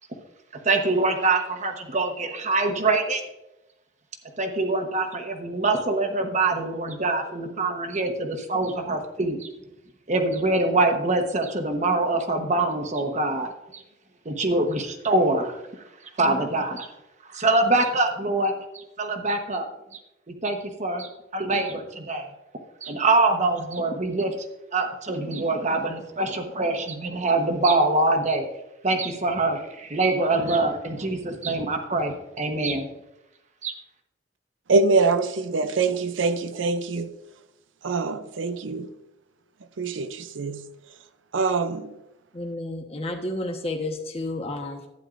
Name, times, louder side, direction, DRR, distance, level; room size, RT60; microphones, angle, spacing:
voice 1, 0.6-3.2 4.4-9.5 10.1-13.8 14.2-15.6 16.2-16.9 17.3-19.6 19.9-20.0 20.3-22.3 22.8-24.5 24.7-28.5 28.8-32.9 33.6-33.7, right 2 dB, 40° right, 1.1 m, -24 dB
voice 2, 34.7-37.1 37.8-38.9 39.8-40.6 41.3-41.9, right 3 dB, 85° right, 0.6 m, -24 dB
voice 3, 42.3-44.8, left 2 dB, 30° left, 1.1 m, -31 dB
12.0 x 9.4 x 2.5 m
head